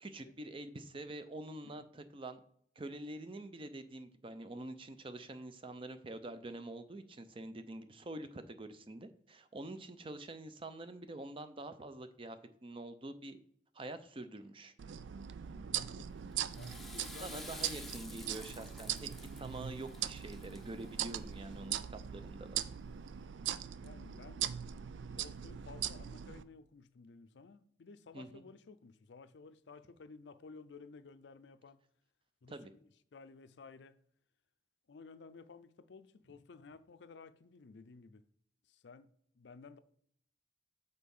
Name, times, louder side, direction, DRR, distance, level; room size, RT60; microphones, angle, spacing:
voice 1, 0.0-2.4 2.8-13.4 13.7-14.7 17.2-19.1 19.3-22.6 28.1-28.4 32.5-32.7, right 2 dB, 30° right, 0.6 m, -46 dB
sound 1, 14.8-26.4, right 10 dB, 90° right, 0.4 m, -41 dB
voice 2, 15.6-16.2 16.5-18.1 23.8-24.5 25.1-31.8 32.4-32.5 33.1-34.0 34.9-38.2 38.6-39.8, left 4 dB, 75° left, 0.5 m, -55 dB
Water / Toilet flush, 16.3-21.5, left 1 dB, ahead, 0.8 m, -52 dB
6.7 x 4.0 x 5.4 m
head